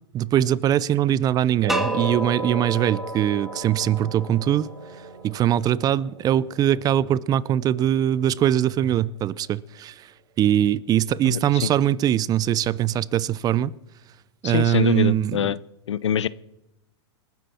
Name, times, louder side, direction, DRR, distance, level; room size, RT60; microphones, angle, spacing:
voice 1, 0.1-4.7 5.2-10.1 10.4-13.7 14.4-15.4, right 11 dB, 25° right, 0.5 m, -22 dB
sound 1, 1.6-8.6, right 3 dB, 65° right, 6.6 m, -36 dB
sound 2, 1.7-4.6, equal, ahead, 1.7 m, -32 dB
voice 2, 11.2-11.7 14.4-15.6 15.9-16.3, left 9 dB, 85° left, 0.7 m, -24 dB
27.0 x 10.0 x 4.3 m
hypercardioid pair, 115°, 15 cm